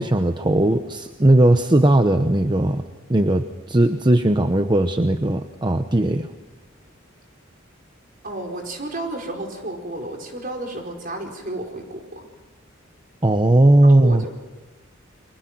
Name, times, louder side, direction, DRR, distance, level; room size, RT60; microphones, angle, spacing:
voice 1, 0.0-2.8 3.1-6.3 13.2-14.2, right 1 dB, 25° right, 8 dB, 0.9 m, -17 dB
voice 2, 8.2-12.2 14.0-14.3, right 1 dB, 45° right, 2 dB, 4.9 m, -32 dB
30.0 x 24.0 x 6.1 m, 1.1 s
head